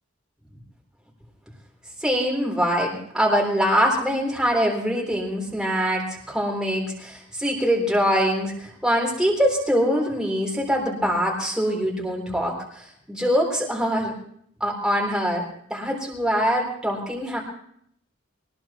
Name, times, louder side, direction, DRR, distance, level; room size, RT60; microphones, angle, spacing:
voice 1, 2.0-12.5 13.1-14.1 14.6-15.4 15.7-17.4, equal, 5° right, -2 dB, 3.7 m, -23 dB
24.5 x 19.0 x 3.0 m, 0.68 s
head